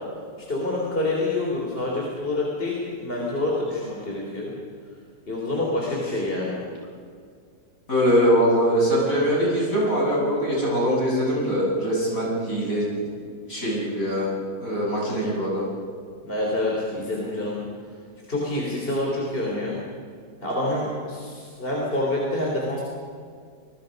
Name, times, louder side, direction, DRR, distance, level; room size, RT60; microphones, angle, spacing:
voice 1, 0.5-4.5 5.3-6.6 16.2-17.6 18.3-19.8 20.4-22.8, left 2 dB, 30° left, -4 dB, 4.0 m, -27 dB
voice 2, 7.9-12.9 13.5-14.3 14.6-15.7, equal, 50° left, -5 dB, 8.4 m, -22 dB
28.0 x 21.0 x 5.4 m, 2.2 s
omnidirectional pair, 1.9 m